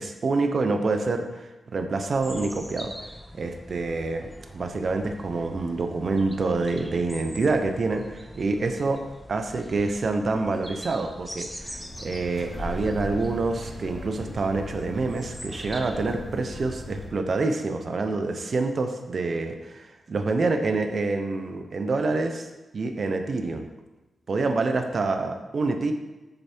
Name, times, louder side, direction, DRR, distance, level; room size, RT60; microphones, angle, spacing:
voice 1, 0.0-2.9 3.3-9.0 9.3-23.7 24.3-25.9, right 3 dB, 50° right, 6 dB, 0.8 m, -27 dB
sound 1, 2.1-16.2, equal, ahead, 0.8 m, -43 dB
sound 2, 11.4-17.1, left 1 dB, 20° left, 2.1 m, -39 dB
8.0 x 6.8 x 4.5 m, 1.1 s
wide cardioid pair, 115°, 0 cm